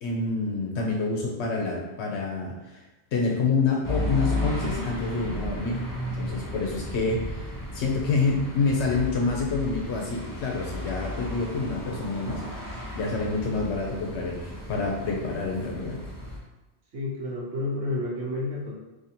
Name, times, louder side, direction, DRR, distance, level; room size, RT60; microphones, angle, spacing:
voice 1, 0.0-2.8 3.1-12.4 12.9-16.0, left 4 dB, 70° left, -1 dB, 0.8 m, -27 dB
sound 1, 3.8-16.4, left 1 dB, 25° left, 0.5 m, -34 dB
voice 2, 16.9-18.7, left 2 dB, 75° right, -4 dB, 1.1 m, -30 dB
2.7 x 2.6 x 4.2 m, 1.1 s
omnidirectional pair, 1.2 m